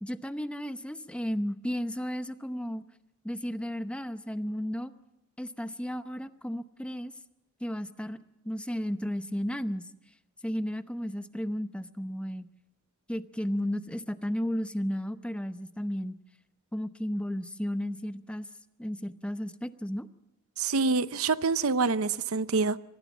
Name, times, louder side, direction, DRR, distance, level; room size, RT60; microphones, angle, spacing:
voice 1, 0.0-2.8 3.2-4.9 5.4-7.1 7.6-8.2 8.4-9.9 10.4-12.5 13.1-16.1 16.7-18.5 18.8-20.1, equal, 5° left, 0.8 m, -33 dB
voice 2, 20.6-22.8, right 4 dB, 75° right, 0.7 m, -26 dB
25.5 x 19.0 x 7.3 m
head